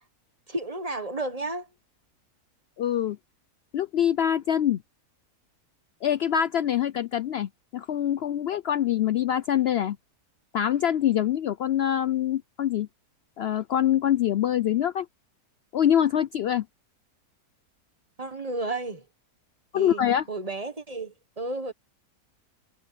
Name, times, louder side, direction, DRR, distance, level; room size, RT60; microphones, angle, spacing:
voice 1, 0.5-1.7 18.2-19.0 19.7-20.0 20.3-21.7, right 2 dB, 25° right, 1.4 m, -32 dB
voice 2, 2.8-3.2 3.7-4.8 6.0-10.0 10.5-12.9 13.4-15.1 15.7-16.6 19.7-20.2, left 10 dB, 85° left, 0.5 m, -24 dB
omnidirectional pair, 1.6 m